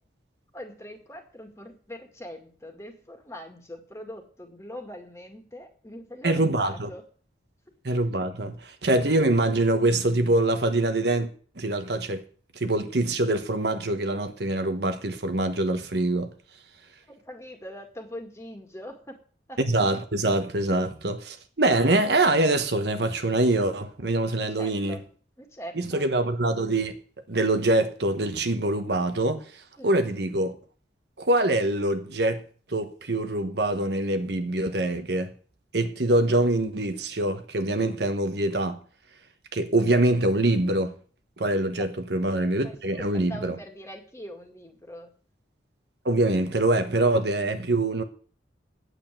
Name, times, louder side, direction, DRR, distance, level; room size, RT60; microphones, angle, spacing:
voice 1, 0.5-7.0 17.1-19.2 19.5-19.6 24.6-25.0 25.4-26.1 29.8-30.1 42.6-45.1, equal, 15° left, 2.0 m, -42 dB
voice 2, 6.2-6.9 7.8-11.3 11.6-12.2 12.5-16.3 19.7-25.0 25.8-26.9 27.3-29.4 29.8-30.5 31.2-32.4 32.7-35.3 35.7-38.8 39.5-40.9 41.4-43.5 46.0-48.0, right 2 dB, 65° right, 1.2 m, -24 dB
9.2 x 8.1 x 9.0 m
head